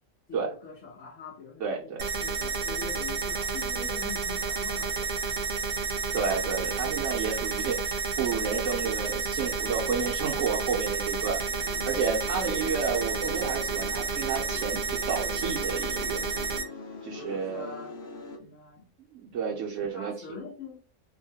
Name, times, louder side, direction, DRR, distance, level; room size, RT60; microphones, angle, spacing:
voice 1, 0.3-5.4 12.5-12.7 17.1-18.0 18.4-18.9 19.3-19.6 19.9-20.8, left 5 dB, 90° left, 1.1 m, -44 dB
voice 2, 1.6-2.0 6.1-11.4 11.9-16.2 17.0-17.7 19.1-20.4, right 6 dB, 80° right, 1.0 m, -31 dB
sound 1, 2.0-16.6, right 4 dB, 55° right, 0.7 m, -31 dB
sound 2, 11.5-18.4, left 3 dB, 55° left, 0.8 m, -43 dB
3.0 x 2.1 x 2.7 m
omnidirectional pair, 1.2 m